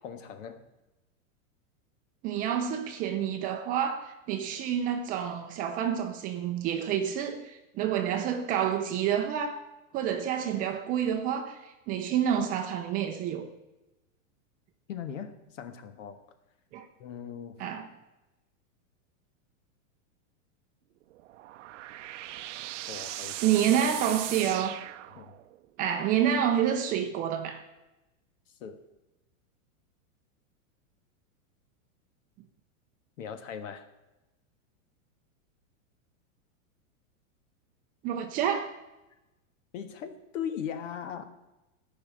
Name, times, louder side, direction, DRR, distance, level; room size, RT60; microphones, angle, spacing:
voice 1, 0.0-0.6 14.9-16.2 17.0-17.6 22.9-23.6 25.1-25.3 28.6-28.8 33.2-33.9 39.7-41.2, left 8 dB, 65° left, 1.6 m, -39 dB
voice 2, 2.2-9.6 9.9-13.5 16.7-16.9 17.6-17.9 23.4-24.8 25.8-27.6 38.0-38.7, right 9 dB, 20° right, 0.6 m, -28 dB
sound 1, 21.1-25.6, right 14 dB, 60° right, 0.7 m, -39 dB
14.0 x 6.0 x 9.2 m
supercardioid pair, 160°, 41 cm